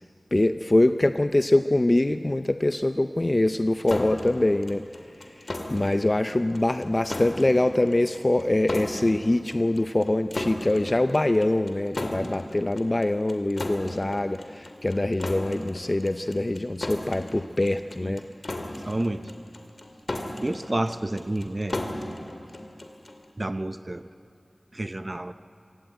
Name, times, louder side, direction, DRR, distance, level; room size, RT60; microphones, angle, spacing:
voice 1, 0.3-4.8 5.2-18.2, left 1 dB, 35° left, 9 dB, 0.5 m, -24 dB
sound 1, 3.9-23.2, left 1 dB, 60° left, 2.2 m, -36 dB
voice 2, 18.8-19.2 20.4-22.0 23.4-24.0 24.7-25.3, right 1 dB, 35° right, 11 dB, 0.6 m, -29 dB
25.5 x 16.5 x 9.1 m, 2.7 s
wide cardioid pair, 65°, 0 cm